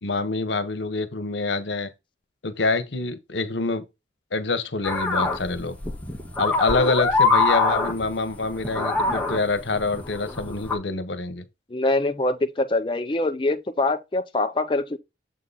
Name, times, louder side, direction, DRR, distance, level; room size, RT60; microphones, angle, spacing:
voice 1, 0.0-1.9 2.4-3.8 4.3-5.8 6.4-11.4, left 3 dB, 85° left, 1.1 m, -26 dB
sound 1, 4.8-10.8, left 3 dB, 10° left, 0.9 m, -24 dB
voice 2, 11.7-15.0, left 2 dB, 25° left, 0.5 m, -24 dB
7.6 x 3.8 x 4.0 m
head